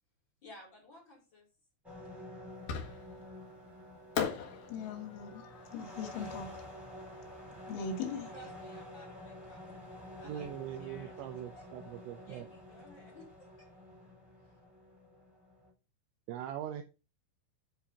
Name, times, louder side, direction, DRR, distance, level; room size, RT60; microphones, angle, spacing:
voice 1, 0.4-1.5 8.3-9.8 10.2-10.5 10.8-11.7 12.2-14.1 14.4-14.5, equal, 30° left, 3.1 m, -56 dB
sound 1, 1.8-15.7, left 1 dB, ahead, 2.7 m, -49 dB
Fireworks, 2.7-3.3 4.2-7.3, left 7 dB, 60° left, 2.2 m, -40 dB
voice 2, 4.7-5.5 5.7-6.6 7.7-8.3, left 5 dB, 80° left, 4.0 m, -39 dB
voice 3, 10.2-12.5 16.3-16.8, right 11 dB, 80° right, 2.8 m, -41 dB
10.5 x 4.1 x 5.4 m
omnidirectional pair, 5.5 m